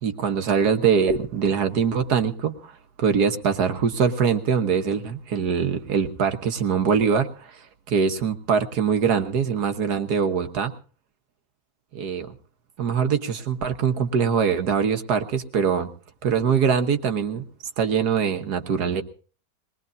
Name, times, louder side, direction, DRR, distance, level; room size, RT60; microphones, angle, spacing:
voice 1, 0.0-2.7 3.0-7.6 7.9-10.7 11.9-12.3 12.8-15.9 16.2-17.4 17.8-19.0, right 6 dB, 60° right, 8 dB, 1.6 m, -23 dB
21.5 x 20.0 x 2.6 m, 0.40 s
omnidirectional pair, 1.9 m